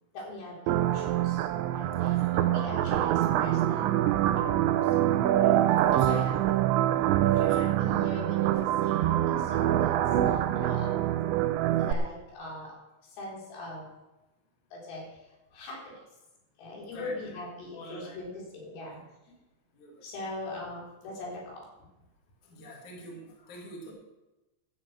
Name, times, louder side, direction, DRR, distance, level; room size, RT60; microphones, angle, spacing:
voice 1, 0.1-1.5 1.7-3.9 4.4-5.0 5.4-5.6 5.9-6.3 7.3-10.0 10.3-11.2 11.8-12.8 13.0-13.9 14.7-16.0 16.6-19.0 20.0-21.7 23.9-24.0, left 2 dB, 70° left, -3 dB, 6.2 m, -41 dB
sound 1, 0.7-11.9, right 12 dB, 90° right, 2.6 m, -25 dB
voice 2, 1.7-2.7 5.9-6.6 7.4-7.7 16.9-17.4 17.7-18.3 18.7-18.9 19.8-20.0 22.4-23.9, equal, 45° left, -2 dB, 3.6 m, -47 dB
13.0 x 7.7 x 8.0 m, 1.0 s
omnidirectional pair, 6.0 m